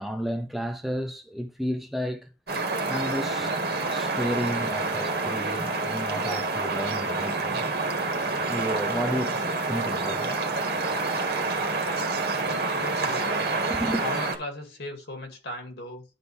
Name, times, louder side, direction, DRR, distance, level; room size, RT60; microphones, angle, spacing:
voice 1, 0.0-2.3 2.9-3.5 3.9-7.7 8.5-10.5 13.7-14.0, equal, ahead, 0.5 m, -32 dB
sound 1, 2.5-14.4, right 3 dB, 60° right, 1.8 m, -28 dB
voice 2, 12.3-13.5 14.0-16.0, left 2 dB, 65° left, 2.2 m, -38 dB
11.5 x 3.9 x 3.4 m
head